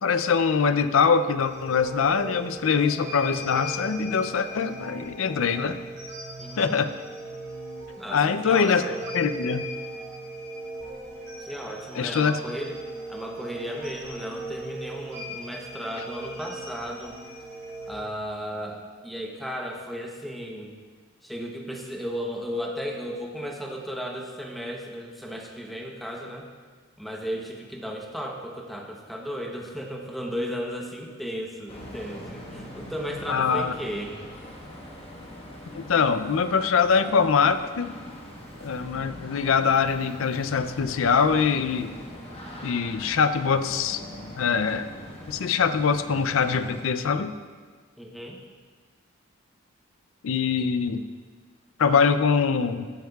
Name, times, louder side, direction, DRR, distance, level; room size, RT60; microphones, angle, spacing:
voice 1, 0.0-5.8 6.6-6.9 8.1-9.6 11.9-12.4 33.3-33.7 35.7-37.9 38.6-41.9 42.6-44.0 44.4-44.9 45.3-47.3 50.2-51.0 51.8-52.9, left 6 dB, 70° left, 11 dB, 0.4 m, -23 dB
sound 1, 1.4-17.9, right 1 dB, 50° right, 2.6 m, -38 dB
voice 2, 6.4-6.8 8.0-9.0 11.4-12.8 13.1-17.2 17.9-20.7 21.2-26.5 27.0-34.1 48.0-48.4 50.6-50.7, equal, ahead, 0 dB, 0.8 m, -35 dB
sound 2, 31.7-46.8, left 1 dB, 25° left, 1.3 m, -42 dB
14.0 x 9.2 x 2.3 m, 1.5 s
head